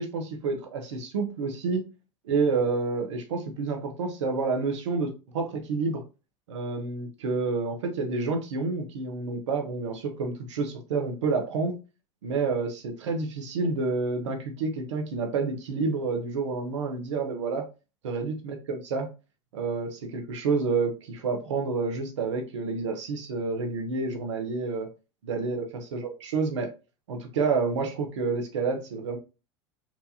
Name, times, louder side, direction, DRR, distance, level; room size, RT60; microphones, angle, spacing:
voice 1, 0.0-1.9 2.2-6.0 6.5-11.8 12.2-17.7 18.0-19.1 19.5-24.9 25.2-26.7 27.1-29.2, right 4 dB, 80° right, 5 dB, 1.0 m, -29 dB
4.5 x 2.7 x 2.7 m, 0.31 s
hypercardioid pair, 90°, 15 cm